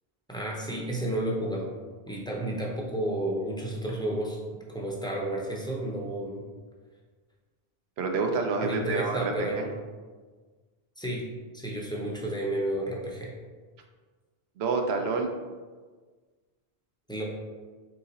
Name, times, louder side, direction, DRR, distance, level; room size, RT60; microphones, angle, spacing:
voice 1, 0.3-1.7 2.1-4.4 4.7-6.4 8.6-9.7 11.0-11.3 11.5-13.3 17.1-17.2, right 1 dB, 5° left, -3 dB, 0.5 m, -31 dB
voice 2, 8.0-9.7 14.6-15.3, right 4 dB, 85° right, 3 dB, 0.8 m, -28 dB
3.7 x 3.0 x 4.0 m, 1.4 s
omnidirectional pair, 1.0 m